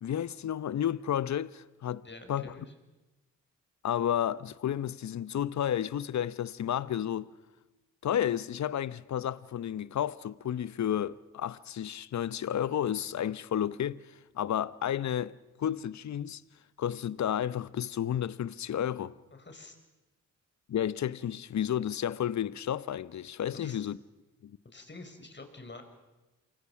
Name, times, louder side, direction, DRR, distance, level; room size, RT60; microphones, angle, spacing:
voice 1, 0.0-2.5 3.8-7.3 8.0-14.0 14.3-16.4 16.8-19.1 20.7-24.0 24.4-24.6, left 10 dB, 55° left, 0.9 m, -32 dB
voice 2, 2.0-2.7 19.3-19.8 23.5-23.9 24.7-25.8, left 3 dB, 30° left, 5.1 m, -47 dB
28.0 x 23.5 x 5.9 m
hypercardioid pair, 40°, 34 cm